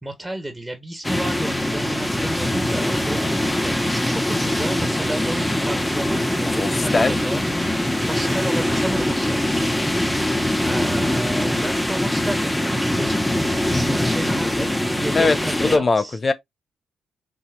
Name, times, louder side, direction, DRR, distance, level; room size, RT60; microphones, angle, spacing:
voice 1, 0.0-7.5 7.7-9.6 10.6-16.2, right 1 dB, 10° right, 1.7 m, -32 dB
sound 1, 1.0-15.8, left 1 dB, 10° left, 1.1 m, -22 dB
voice 2, 6.5-7.1 15.1-16.3, left 3 dB, 40° left, 0.6 m, -21 dB
6.1 x 2.8 x 2.5 m
hypercardioid pair, 40°, 0 cm